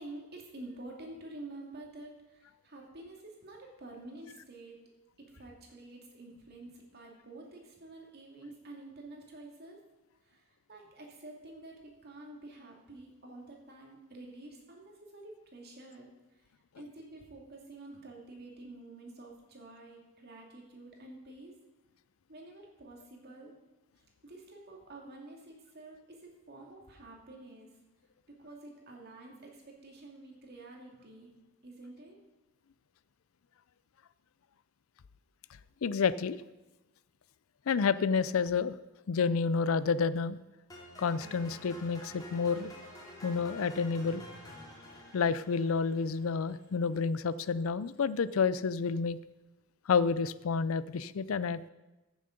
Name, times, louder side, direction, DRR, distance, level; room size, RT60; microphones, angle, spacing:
voice 1, 0.0-4.8 5.3-9.8 10.3-10.4 10.7-16.1 16.8-21.5 22.3-23.5 24.2-27.7 28.4-31.3 31.6-32.2, right 2 dB, 50° right, 0 dB, 2.6 m, -49 dB
voice 2, 35.8-36.4 37.7-38.7 39.1-40.4 41.0-42.7 43.2-44.2 45.1-49.2 49.9-51.6, left 5 dB, 75° left, 17 dB, 0.5 m, -29 dB
sound 1, 40.7-46.8, equal, 20° left, 2.8 m, -49 dB
14.0 x 7.2 x 5.2 m, 1.1 s
head